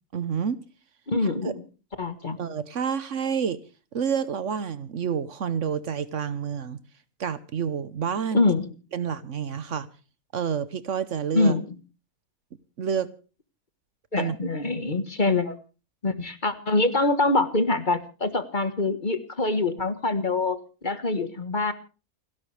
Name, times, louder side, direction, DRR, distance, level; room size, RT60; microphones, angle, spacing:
voice 1, 0.1-0.6 1.2-1.5 2.4-3.6 3.9-6.8 7.2-8.4 8.9-9.9 10.3-11.5 12.8-13.1 14.2-14.4 15.3-15.4, right 7 dB, 65° right, 1.3 m, -29 dB
voice 2, 1.1-1.6 2.0-2.4 8.3-8.7 11.3-11.8 14.1-15.5 16.0-20.6 20.8-21.7, left 3 dB, 35° left, 1.5 m, -24 dB
29.0 x 11.5 x 3.3 m
omnidirectional pair, 1.4 m